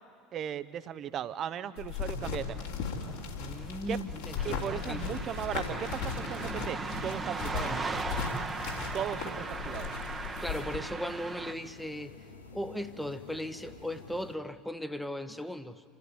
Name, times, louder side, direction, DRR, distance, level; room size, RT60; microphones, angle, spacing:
voice 1, 0.3-2.7 3.9-4.0 4.4-8.0 8.9-9.9, right 9 dB, 40° right, 15 dB, 0.8 m, -37 dB
sound 1, 1.8-10.8, left 5 dB, 65° left, 3.1 m, -37 dB
sound 2, 2.7-14.4, left 3 dB, 85° left, 1.5 m, -50 dB
voice 2, 3.4-5.2 10.4-12.3 12.5-15.8, equal, ahead, 11 dB, 1.1 m, -37 dB
sound 3, 4.4-11.5, right 4 dB, 20° right, 1.1 m, -38 dB
27.5 x 14.5 x 9.5 m, 2.2 s
figure-of-eight pair, 70°, 0 cm